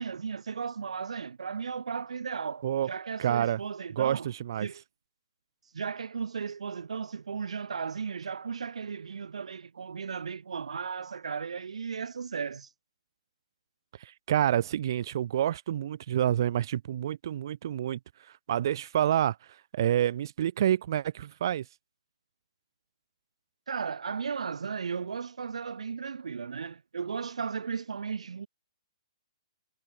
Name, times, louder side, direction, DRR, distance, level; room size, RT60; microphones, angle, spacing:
voice 1, 0.0-4.3 4.6-4.8 5.7-12.7 23.7-28.5, right 6 dB, 90° right, 1.5 m, -35 dB
voice 2, 3.2-3.6 4.0-4.7 14.0-21.7, right 11 dB, 40° right, 2.7 m, -28 dB
hypercardioid pair, 170°, 3 cm